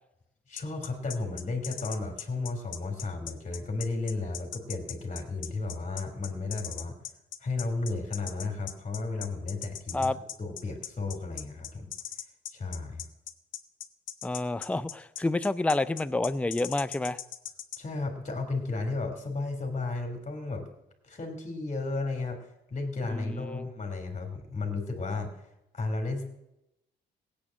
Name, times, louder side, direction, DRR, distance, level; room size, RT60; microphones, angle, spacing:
voice 1, 0.5-7.0 7.4-11.9 12.5-13.0 17.8-20.6 21.0-25.3 25.7-26.2, left 3 dB, 35° left, 3 dB, 3.1 m, -33 dB
sound 1, 0.6-17.8, left 11 dB, 80° left, 1.1 m, -39 dB
voice 2, 14.2-17.2 23.1-23.6, left 2 dB, 5° left, 14 dB, 0.6 m, -29 dB
16.5 x 8.7 x 7.6 m, 0.88 s
cardioid pair, 90°, 20 cm